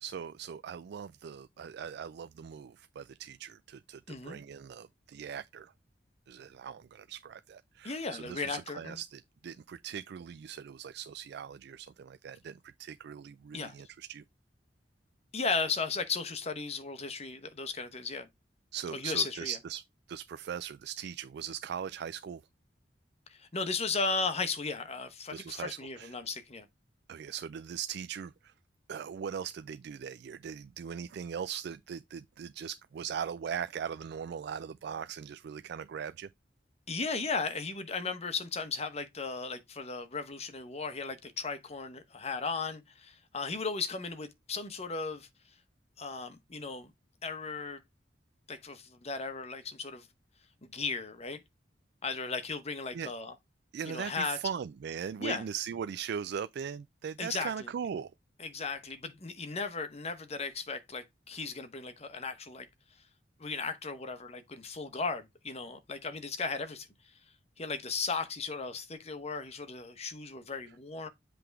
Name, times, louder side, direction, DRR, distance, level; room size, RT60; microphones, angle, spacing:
voice 1, 0.0-5.7 6.3-14.2 18.7-19.8 20.1-22.4 25.3-26.1 27.1-28.3 28.9-36.3 52.9-53.1 53.7-58.1, right 7 dB, 60° right, 0.3 m, -40 dB
voice 2, 4.1-4.4 7.8-9.0 13.5-13.8 15.3-18.3 18.9-19.6 23.3-26.7 36.9-45.3 46.0-46.9 47.2-47.8 48.5-50.1 50.6-51.4 52.0-53.3 53.8-54.5 55.2-55.4 57.2-57.7 58.4-62.7 63.4-66.9 67.6-71.1, left 4 dB, 35° left, 1.0 m, -36 dB
7.8 x 3.3 x 4.6 m
head